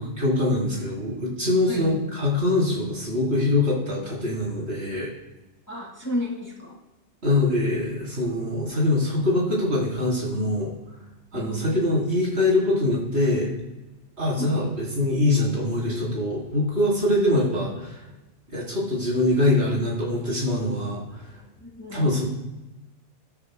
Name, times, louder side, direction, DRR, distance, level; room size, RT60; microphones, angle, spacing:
voice 1, 0.0-5.1 7.2-10.7 11.3-13.5 14.2-18.0 18.5-21.2 21.9-22.2, left 2 dB, 65° right, -5 dB, 3.9 m, -23 dB
voice 2, 1.7-2.0 5.7-6.8 11.3-11.8 14.4-14.7 21.6-22.2, left 1 dB, 15° left, -2 dB, 1.8 m, -33 dB
14.5 x 12.0 x 2.2 m, 1.0 s
omnidirectional pair, 1.2 m